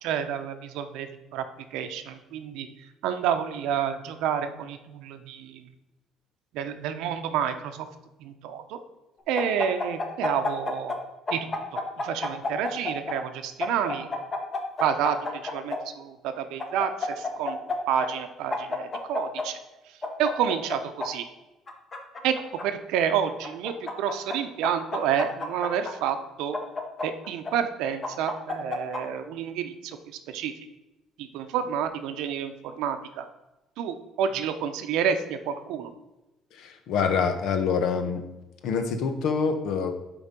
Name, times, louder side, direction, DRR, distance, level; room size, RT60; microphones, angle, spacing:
voice 1, 0.0-1.1 1.3-1.4 1.7-2.7 3.0-5.6 6.5-7.9 8.2-8.8 9.3-10.9 11.3-14.1 14.8-15.2 15.5-17.6 17.9-19.6 20.2-21.2 22.2-22.3 22.6-26.6 27.0-29.7 30.3-30.5 31.2-32.5 32.8-33.2 33.8-35.9, right 8 dB, 85° right, 8 dB, 0.8 m, -29 dB
sound 1, 9.4-11.0 11.3-13.2 13.6-15.8 16.6-17.8 18.0-18.1 18.5-19.5 20.0-21.1 21.7-22.6 23.4-24.4 24.6-25.9 26.5-27.5 28.0-29.0, left 3 dB, 25° left, 1.0 m, -30 dB
voice 2, 36.6-38.2 38.6-40.0, left 5 dB, 65° left, 8 dB, 1.0 m, -26 dB
10.0 x 3.9 x 5.2 m, 0.99 s
cardioid pair, 150°, 0 cm